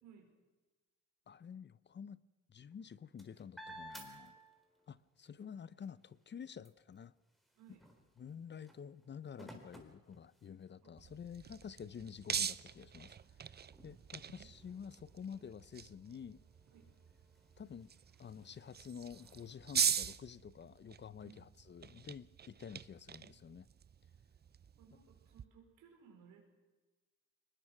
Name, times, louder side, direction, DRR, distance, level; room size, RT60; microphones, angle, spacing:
voice 1, 0.0-0.3 7.6-7.9 10.8-10.9 14.1-14.3 16.7-16.9 21.2-21.5 24.7-26.4, right 7 dB, 90° right, 5.2 m, -61 dB
voice 2, 1.3-2.2 2.5-4.4 4.9-7.1 8.2-16.4 17.6-17.9 18.2-23.7, left 7 dB, 35° left, 0.7 m, -50 dB
sound 1, 2.6-5.0 5.4-10.9 11.5-11.6 12.0-19.9, right 1 dB, ahead, 4.2 m, -58 dB
sound 2, 11.0-25.4, right 7 dB, 35° right, 0.6 m, -42 dB
23.0 x 20.0 x 6.1 m
cardioid pair, 90°, 30 cm